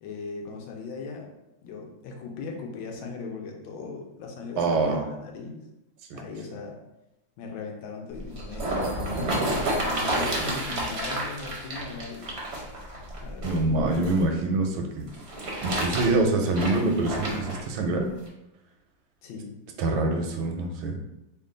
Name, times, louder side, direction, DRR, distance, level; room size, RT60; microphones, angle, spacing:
voice 1, 0.0-1.3 1.6-5.6 6.1-6.8 7.4-12.4 13.2-13.6 19.2-19.6, left 4 dB, 85° left, 1 dB, 1.4 m, -38 dB
voice 2, 4.6-5.1 6.1-6.2 13.4-15.1 15.6-18.1 19.8-21.0, right 2 dB, 85° right, 3 dB, 1.4 m, -25 dB
sound 1, 8.1-14.2 15.1-17.6 18.3-18.4, right 1 dB, 60° right, 0.7 m, -30 dB
3.6 x 2.2 x 3.7 m, 0.91 s
omnidirectional pair, 2.2 m